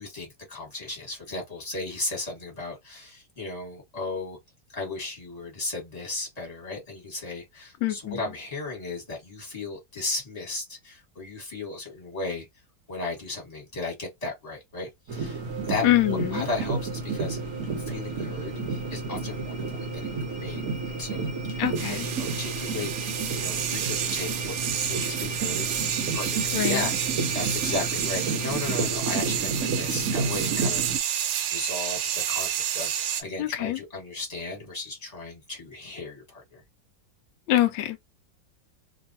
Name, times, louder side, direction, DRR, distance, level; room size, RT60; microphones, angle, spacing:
voice 1, 0.0-4.4 4.7-12.5 12.9-15.4 15.7-17.4 17.8-22.9 23.3-31.1 31.5-32.9 33.2-36.6, left 3 dB, 20° left, 1.4 m, -35 dB
voice 2, 7.8-8.2 15.8-16.4 21.6-22.1 26.5-26.8 33.4-33.8 37.5-38.0, left 14 dB, 80° left, 1.2 m, -24 dB
sound 1, 15.1-29.1, right 3 dB, 25° right, 0.8 m, -40 dB
sound 2, 15.1-31.0, right 4 dB, 60° right, 0.9 m, -31 dB
sound 3, 21.8-33.2, right 10 dB, 85° right, 1.4 m, -30 dB
2.9 x 2.6 x 2.7 m
omnidirectional pair, 2.0 m